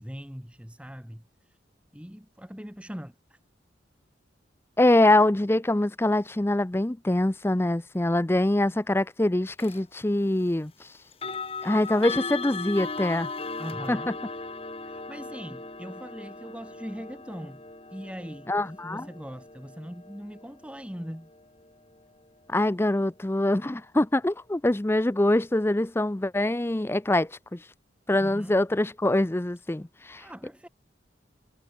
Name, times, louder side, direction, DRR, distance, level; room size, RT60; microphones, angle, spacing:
voice 1, 0.0-1.6 1.9-3.4 13.6-14.2 14.8-17.6 17.9-21.3 28.2-28.7 30.1-30.7, equal, 5° right, 2.2 m, -41 dB
voice 2, 4.8-10.7 11.6-13.3 13.9-14.0 18.5-19.1 22.5-27.6 28.1-30.2, left 1 dB, 15° left, 0.5 m, -24 dB
sound 1, 9.6-9.8 11.1-22.0, left 4 dB, 30° left, 6.0 m, -38 dB
head